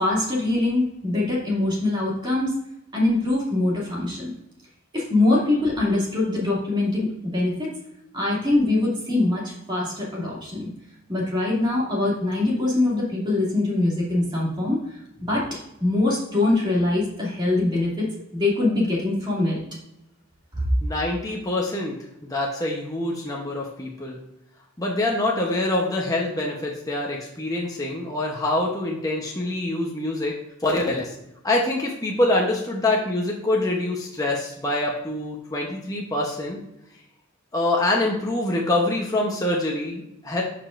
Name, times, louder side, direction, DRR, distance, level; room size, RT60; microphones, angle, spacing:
voice 1, 0.0-2.5 2.9-4.3 4.9-7.7 8.1-10.7 11.1-15.5 15.8-19.6 20.5-20.6, left 2 dB, 20° right, -5 dB, 2.4 m, -23 dB
voice 2, 20.8-22.0 22.3-24.2 24.8-30.3 30.6-31.1 31.4-36.6 37.5-40.4, left 2 dB, 15° left, -2 dB, 0.8 m, -25 dB
11.5 x 5.1 x 2.5 m, 0.86 s
head